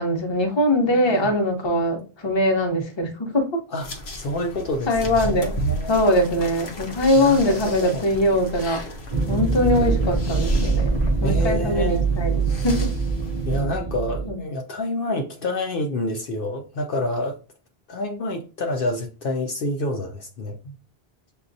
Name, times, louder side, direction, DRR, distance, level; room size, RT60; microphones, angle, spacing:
voice 1, 0.0-3.6 4.9-5.6 5.9-8.8 9.3-10.9 11.2-12.9 14.3-14.4, left 1 dB, 30° left, 0.7 m, -22 dB
voice 2, 0.8-1.3 3.7-6.5 7.1-8.1 11.2-12.1 13.5-17.4 17.9-20.7, left 1 dB, 65° left, 0.7 m, -28 dB
sound 1, 3.8-13.6, right 1 dB, 85° left, 1.1 m, -31 dB
sound 2, 9.1-14.3, right 4 dB, 50° right, 0.5 m, -24 dB
6.8 x 2.3 x 2.6 m
omnidirectional pair, 1.0 m